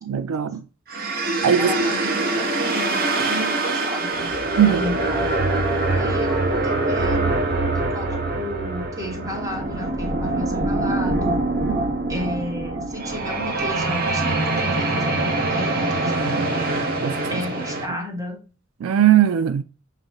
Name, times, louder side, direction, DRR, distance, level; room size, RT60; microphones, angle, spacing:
voice 1, 0.0-0.6 1.4-1.7 4.6-4.9 11.6-11.8 16.3-16.5 17.0-17.4 18.8-19.6, right 10 dB, 85° right, 0.3 m, -19 dB
sound 1, 0.9-17.9, right 2 dB, 50° right, 1.0 m, -24 dB
voice 2, 1.6-4.3 4.6-5.3 5.9-7.4 7.7-11.4 12.1-16.5 17.3-18.4, equal, 15° right, 1.5 m, -32 dB
5.9 x 2.7 x 2.9 m
head